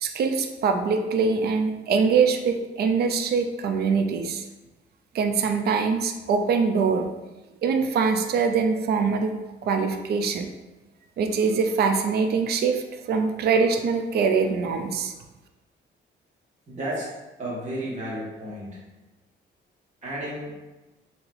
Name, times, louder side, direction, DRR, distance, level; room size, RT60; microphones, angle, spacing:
voice 1, 0.0-4.4 5.1-7.2 7.6-9.3 9.6-10.5 11.2-15.1, right 5 dB, 55° right, 6 dB, 0.4 m, -23 dB
voice 2, 16.7-17.1 17.4-18.8 20.0-20.5, right 1 dB, 35° right, -5 dB, 1.3 m, -32 dB
3.2 x 2.8 x 2.5 m, 1.1 s
cardioid pair, 90°, 20 cm